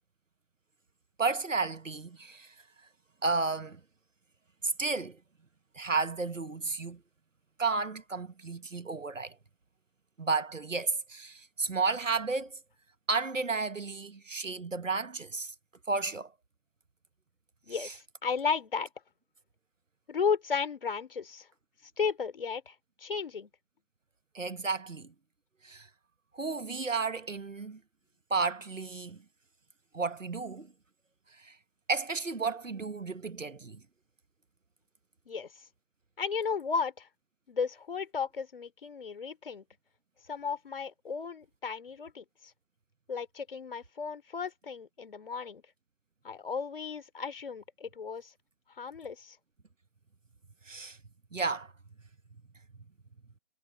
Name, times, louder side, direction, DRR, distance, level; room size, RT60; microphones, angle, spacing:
voice 1, 1.2-2.5 3.2-3.8 4.6-5.2 5.7-7.0 7.6-9.4 10.2-12.6 13.1-15.5 15.9-16.3 17.7-17.9 24.3-25.1 25.6-25.9 26.3-27.8 28.3-29.2 29.9-30.7 31.4-31.6 31.9-33.8 50.7-51.0 51.3-51.7, right 4 dB, 85° right, 1.4 m, -32 dB
voice 2, 17.6-18.9 20.1-21.5 22.0-23.5 35.3-35.5 36.2-37.1 37.5-39.6 40.3-42.2 43.1-45.6 46.2-48.3 48.8-49.4, left 6 dB, 45° left, 4.4 m, -34 dB
figure-of-eight pair, 150°, 37 cm